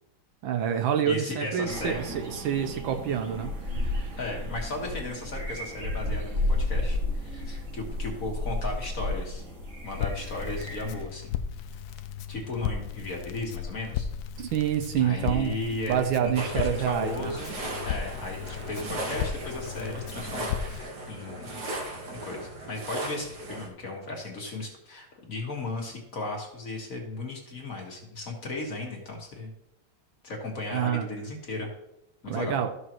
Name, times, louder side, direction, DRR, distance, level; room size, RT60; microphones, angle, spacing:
voice 1, 0.4-4.1 14.4-15.5 15.9-17.3 30.7-31.1 32.3-32.7, right 9 dB, 70° right, 7 dB, 1.4 m, -27 dB
voice 2, 1.0-2.0 4.1-9.4 9.8-11.4 12.3-14.1 15.0-17.6 17.8-21.6 22.2-29.5 30.2-31.7 32.2-32.6, left 2 dB, 40° left, 0 dB, 1.8 m, -35 dB
sound 1, 1.7-11.0, left 1 dB, 35° right, 2.7 m, -32 dB
Crackle, 9.9-20.8, left 8 dB, 85° left, 0.8 m, -35 dB
sound 2, 16.4-23.7, right 2 dB, 50° right, 1.9 m, -37 dB
13.5 x 6.4 x 3.0 m, 0.81 s
omnidirectional pair, 2.3 m